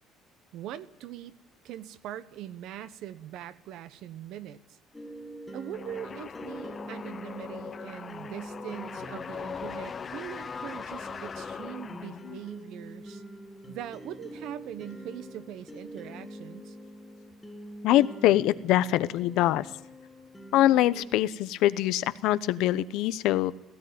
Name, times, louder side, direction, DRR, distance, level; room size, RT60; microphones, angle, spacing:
voice 1, 0.5-1.3 1.6-4.8 5.5-13.2 13.7-16.8, right 11 dB, 65° right, 14 dB, 1.1 m, -42 dB
sound 1, 4.9-21.1, equal, 5° left, 2.2 m, -45 dB
sound 2, 5.7-12.5, left 6 dB, 25° left, 0.7 m, -40 dB
voice 2, 17.8-19.7 20.5-23.5, left 14 dB, 75° left, 15 dB, 0.9 m, -24 dB
17.0 x 16.0 x 9.4 m, 0.87 s
cardioid pair, 155°, 0 cm